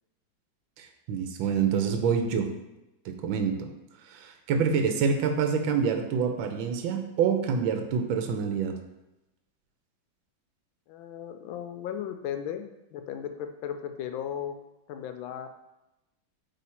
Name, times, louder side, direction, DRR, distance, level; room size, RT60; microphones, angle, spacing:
voice 1, 0.8-2.5 3.0-3.7 4.1-8.8, right 6 dB, 80° right, 5 dB, 1.5 m, -27 dB
voice 2, 10.9-14.6 14.9-15.5, left 9 dB, 90° left, 7 dB, 1.4 m, -36 dB
8.3 x 3.7 x 4.3 m, 0.94 s
omnidirectional pair, 2.1 m